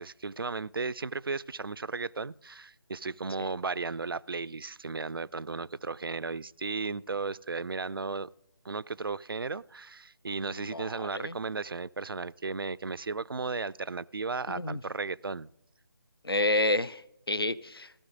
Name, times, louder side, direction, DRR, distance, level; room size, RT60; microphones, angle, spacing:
voice 1, 0.0-8.3 8.6-15.5, right 4 dB, 70° right, 19 dB, 0.4 m, -35 dB
voice 2, 10.5-11.4 14.5-14.8 16.2-18.0, left 2 dB, 85° left, 19 dB, 0.6 m, -30 dB
15.0 x 13.0 x 3.8 m, 0.80 s
figure-of-eight pair, 150°, 12 cm